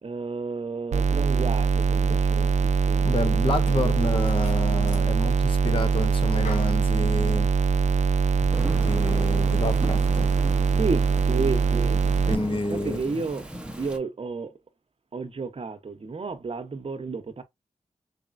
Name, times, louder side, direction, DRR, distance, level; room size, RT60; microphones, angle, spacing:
voice 1, 0.0-4.3 10.7-13.5 13.8-14.5 15.1-17.4, right 4 dB, 50° right, 0.9 m, -32 dB
sound 1, 0.9-12.4, right 5 dB, 70° right, 0.4 m, -22 dB
voice 2, 3.0-7.5 8.7-10.3 12.2-13.2, left 2 dB, 45° left, 0.9 m, -30 dB
sound 2, 3.1-12.6, left 4 dB, 80° left, 1.1 m, -50 dB
Thunderstorm / Rain, 8.5-14.0, right 1 dB, 10° right, 0.8 m, -37 dB
4.1 x 3.5 x 2.5 m
cardioid pair, 60°, 12 cm